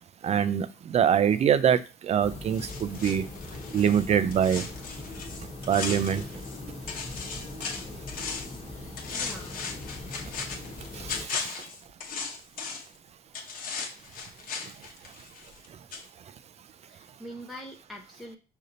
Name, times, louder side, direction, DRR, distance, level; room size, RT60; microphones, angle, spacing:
voice 1, 0.2-3.3 3.7-4.7 5.7-6.3 10.9-11.5, right 8 dB, 40° right, 14 dB, 0.4 m, -24 dB
sound 1, 2.2-11.2, left 2 dB, 35° left, 1.2 m, -40 dB
sound 2, 2.5-6.6 6.9-8.6 9.0-13.0 13.3-15.7 15.9-16.0, left 5 dB, 55° left, 1.0 m, -37 dB
voice 2, 8.7-9.7 16.9-18.4, equal, ahead, -1 dB, 0.6 m, -44 dB
5.0 x 2.7 x 3.9 m, 0.31 s
cardioid pair, 110°, 17 cm